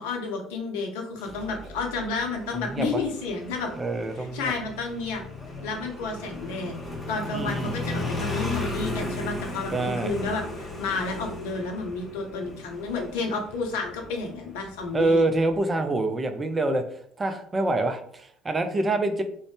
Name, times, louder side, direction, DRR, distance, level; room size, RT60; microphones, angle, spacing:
voice 1, 0.0-3.7 4.2-5.2 5.6-6.7 7.1-15.3, left 3 dB, 70° left, 3 dB, 0.5 m, -31 dB
Motorcycle, 1.3-15.6, left 2 dB, 25° left, 0.8 m, -36 dB
voice 2, 3.8-4.5 7.3-7.7 9.7-10.1 14.9-16.8 17.2-19.2, right 2 dB, 25° right, 7 dB, 0.4 m, -26 dB
2.5 x 2.1 x 3.3 m, 0.63 s
figure-of-eight pair, 55°, 0 cm